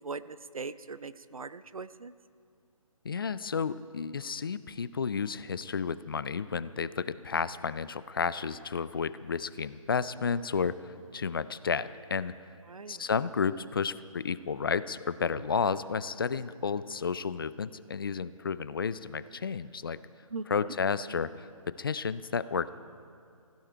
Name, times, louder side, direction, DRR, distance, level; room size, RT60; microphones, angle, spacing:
voice 1, 0.0-2.1 12.7-13.1 20.3-20.5, right 4 dB, 75° right, 15 dB, 0.6 m, -40 dB
voice 2, 3.0-12.3 12.9-20.0 20.5-22.7, left 6 dB, 40° left, 16 dB, 0.4 m, -32 dB
16.5 x 15.5 x 4.5 m, 2.3 s
figure-of-eight pair, 145°, 18 cm